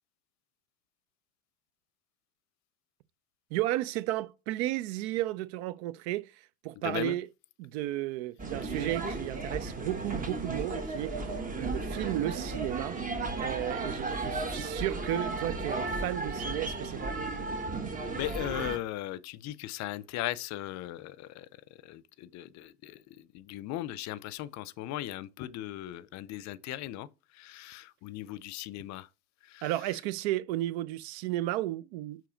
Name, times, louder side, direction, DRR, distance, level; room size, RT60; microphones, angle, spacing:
voice 1, 3.5-7.3 7.6-13.0 13.4-17.2 29.6-32.3, right 15 dB, 80° right, 0.5 m, -33 dB
voice 2, 6.8-7.1 18.1-21.5 21.8-23.0 23.3-27.1 27.4-29.1 29.5-29.6, left 14 dB, 55° left, 0.6 m, -37 dB
sound 1, 8.4-18.8, right 3 dB, 25° right, 1.3 m, -35 dB
6.8 x 3.1 x 5.0 m
supercardioid pair, 90°, 32 cm